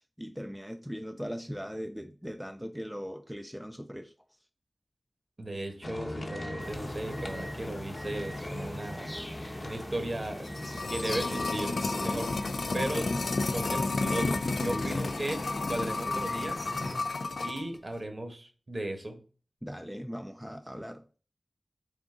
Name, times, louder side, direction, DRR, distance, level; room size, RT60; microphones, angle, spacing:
voice 1, 0.0-4.1 11.8-12.2 14.6-14.9 19.6-21.2, equal, ahead, 0.4 m, -39 dB
voice 2, 5.4-9.2 9.6-10.5 10.9-12.3 12.7-13.1 13.5-16.6 17.4-19.2, right 1 dB, 45° right, 1.1 m, -36 dB
sound 1, 5.8-15.0, left 1 dB, 45° left, 0.9 m, -42 dB
sound 2, 6.6-17.0, equal, 15° left, 0.8 m, -42 dB
sound 3, 10.2-17.6 17.9-18.0, left 3 dB, 75° left, 0.3 m, -31 dB
3.8 x 3.5 x 3.7 m
wide cardioid pair, 60°, 0 cm